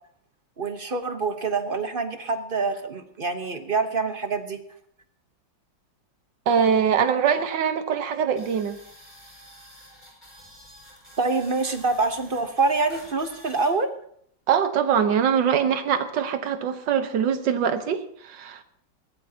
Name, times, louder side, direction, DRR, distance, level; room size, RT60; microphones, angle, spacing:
voice 1, 0.6-4.6 11.2-13.9, right 3 dB, 35° right, 8 dB, 1.0 m, -26 dB
voice 2, 6.5-8.8 14.5-18.6, right 7 dB, 75° right, 9 dB, 1.8 m, -23 dB
sound 1, 8.4-13.7, equal, 25° left, 6.2 m, -48 dB
21.0 x 16.5 x 2.9 m, 0.66 s
omnidirectional pair, 2.0 m